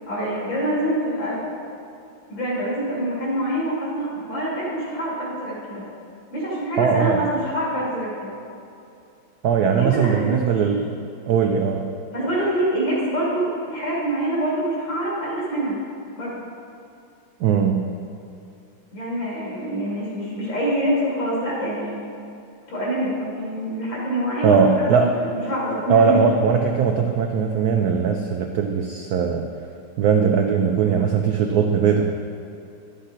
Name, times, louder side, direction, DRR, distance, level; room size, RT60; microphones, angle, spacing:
voice 1, 0.1-1.4 2.3-5.8 6.3-8.3 9.8-10.4 12.1-15.8 16.2-16.5 18.9-22.0 22.7-26.2, right 1 dB, 65° left, -6 dB, 3.1 m, -25 dB
voice 2, 6.8-7.2 9.4-10.9 11.3-11.9 17.4-17.9 24.4-25.2 25.9-29.5 30.0-32.1, right 6 dB, 80° right, 3 dB, 0.8 m, -19 dB
11.5 x 7.2 x 3.9 m, 2.6 s
omnidirectional pair, 2.2 m